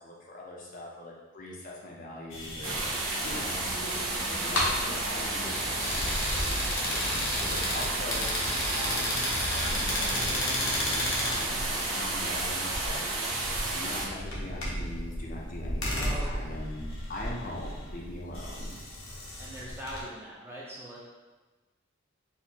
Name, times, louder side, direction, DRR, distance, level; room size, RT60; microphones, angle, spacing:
voice 1, 0.0-4.0 4.3-9.2 9.5-13.0 13.4-18.7, left 1 dB, 40° left, -3 dB, 0.5 m, -42 dB
sound 1, 2.3-20.0, left 1 dB, 80° left, 0.8 m, -34 dB
sound 2, 2.6-14.0, right 2 dB, 80° right, 0.7 m, -32 dB
voice 2, 9.1-9.4 16.0-16.5 19.4-21.0, equal, 10° right, -6 dB, 0.6 m, -42 dB
4.3 x 2.5 x 2.8 m, 1.2 s
head